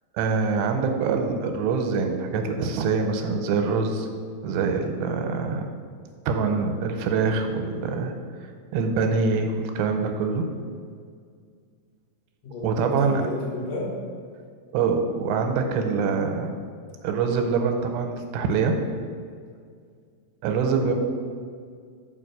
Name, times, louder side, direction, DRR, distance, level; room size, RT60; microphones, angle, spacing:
voice 1, 0.1-4.1 4.4-5.7 6.3-8.1 8.7-10.4 12.6-13.2 14.7-16.6 17.0-18.7 20.4-20.9, right 5 dB, 80° right, 5 dB, 2.8 m, -24 dB
voice 2, 12.4-13.9 20.7-20.9, left 2 dB, 70° left, -6 dB, 1.6 m, -32 dB
5.7 x 5.0 x 6.5 m, 2.1 s
omnidirectional pair, 4.9 m